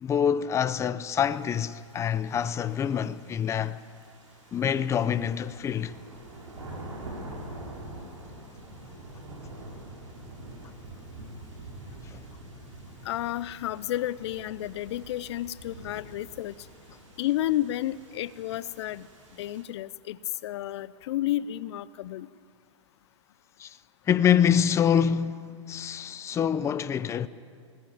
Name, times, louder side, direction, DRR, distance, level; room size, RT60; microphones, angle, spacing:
voice 1, 0.0-3.8 4.5-5.9 12.1-12.2 23.6-23.8 24.1-27.3, left 8 dB, 20° left, 0.7 m, -26 dB
sound 1, 1.2-19.6, right 1 dB, 90° right, 6.3 m, -46 dB
voice 2, 13.0-16.6 17.2-19.1 19.4-22.3, left 13 dB, 60° left, 0.6 m, -31 dB
20.0 x 18.0 x 9.3 m
hypercardioid pair, 125°, 16 cm